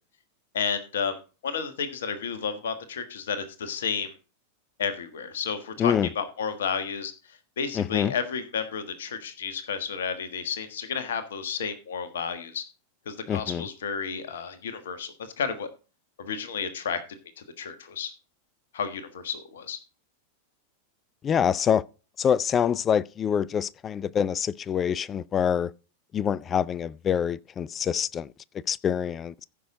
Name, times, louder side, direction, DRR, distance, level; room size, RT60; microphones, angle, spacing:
voice 1, 0.5-4.1 4.8-12.6 13.0-15.7 16.2-17.0 17.4-18.1 18.7-19.8, left 6 dB, 60° left, 1.5 m, -32 dB
voice 2, 7.8-8.1 13.3-13.6 21.2-21.8 22.2-25.7 26.1-28.3 28.7-29.4, left 8 dB, 25° left, 0.4 m, -25 dB
15.0 x 6.2 x 3.8 m
figure-of-eight pair, 90°, 0 cm